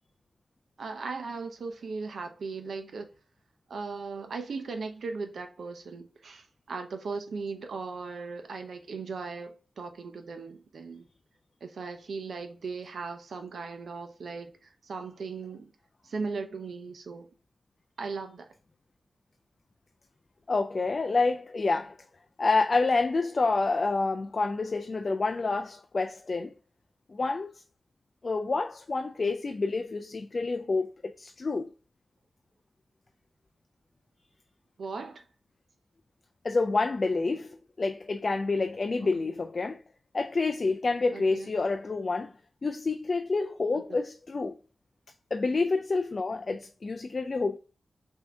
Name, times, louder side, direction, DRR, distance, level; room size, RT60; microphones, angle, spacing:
voice 1, 0.8-3.1 3.7-11.1 11.6-15.7 16.0-17.3 18.0-18.5 34.8-35.2 39.0-39.1 41.1-41.5, right 4 dB, 90° right, 0.7 m, -38 dB
voice 2, 20.5-22.0 22.4-26.5 27.1-27.6 28.2-31.7 36.4-39.8 40.1-42.3 42.6-44.5 45.3-47.6, left 3 dB, 45° left, 0.3 m, -28 dB
5.8 x 2.7 x 3.3 m
wide cardioid pair, 105°, 0 cm